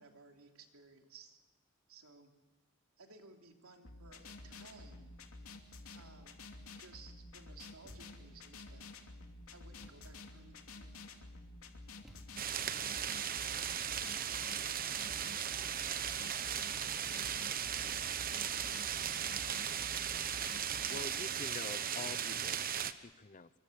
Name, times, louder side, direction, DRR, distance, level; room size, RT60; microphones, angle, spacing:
voice 1, 0.0-1.4 1.9-2.3 3.0-5.1 5.9-6.4 6.7-8.8 9.5-10.9, right 4 dB, 85° right, 3 dB, 3.2 m, -58 dB
sound 1, 3.8-21.0, left 3 dB, 75° left, 2.7 m, -51 dB
Thump thud, 7.8-8.4 9.8-10.3 12.0-12.7, equal, ahead, 3.1 m, -59 dB
sound 2, 12.4-22.9, right 9 dB, 40° right, 1.0 m, -37 dB
voice 2, 14.4-18.7, right 1 dB, 20° right, 4 dB, 2.7 m, -63 dB
voice 3, 20.6-23.5, left 4 dB, 35° left, 15 dB, 0.7 m, -47 dB
26.5 x 23.5 x 6.9 m, 1.4 s
head